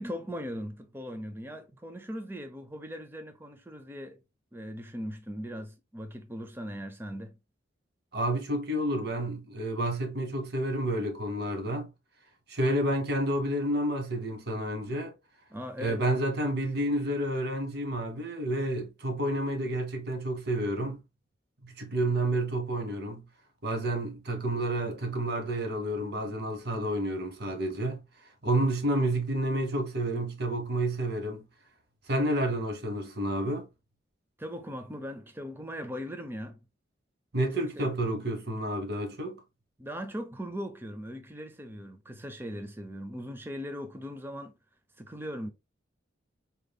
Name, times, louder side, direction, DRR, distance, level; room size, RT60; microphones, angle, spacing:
voice 1, 0.0-4.2 4.5-7.4 15.5-16.1 34.4-36.6 37.5-37.9 39.8-44.6 45.0-45.5, equal, 10° right, 0.5 m, -39 dB
voice 2, 8.1-11.9 12.5-15.1 15.8-21.0 21.6-23.2 23.6-28.0 28.4-31.5 32.1-33.7 37.3-39.4, right 1 dB, 55° right, 0.9 m, -30 dB
4.2 x 3.4 x 2.2 m
head